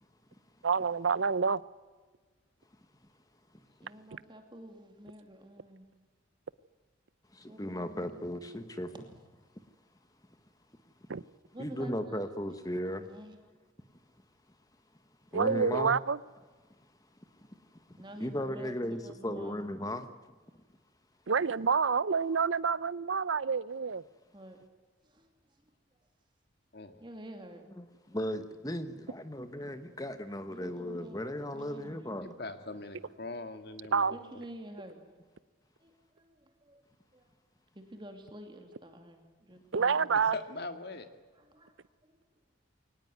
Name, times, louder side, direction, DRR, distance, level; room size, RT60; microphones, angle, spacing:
voice 1, 0.6-1.6 11.1-11.2 15.3-16.2 21.3-24.0 33.9-34.1 39.7-40.4, right 5 dB, 70° right, 20 dB, 0.6 m, -28 dB
voice 2, 3.8-5.9 7.5-8.2 11.5-12.3 13.0-13.4 18.0-19.6 24.3-24.6 25.0-25.3 27.0-27.6 30.5-31.3 31.5-32.3 32.8-33.4 34.1-35.0 35.8-36.8 37.1-37.3 37.7-40.3 41.3-41.8 42.0-42.2, right 1 dB, 25° right, 5 dB, 2.7 m, -49 dB
voice 3, 7.3-8.9 11.6-13.0 15.3-16.0 18.2-20.1 27.8-32.3, equal, 20° left, 10 dB, 1.1 m, -36 dB
voice 4, 32.2-34.2 40.3-41.1, left 2 dB, 50° left, 8 dB, 2.1 m, -41 dB
23.0 x 19.0 x 9.3 m, 1.4 s
head